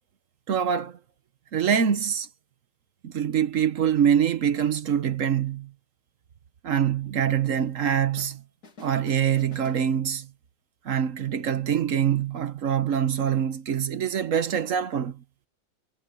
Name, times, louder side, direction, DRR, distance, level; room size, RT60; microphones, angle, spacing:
voice 1, 0.5-1.0 1.5-2.3 3.0-5.7 6.6-8.4 8.8-10.3 10.8-15.2, right 8 dB, 50° right, 1.1 m, -24 dB
sound 1, 7.6-8.4 8.6-10.4, left 3 dB, 55° left, 3.0 m, -50 dB
omnidirectional pair, 2.0 m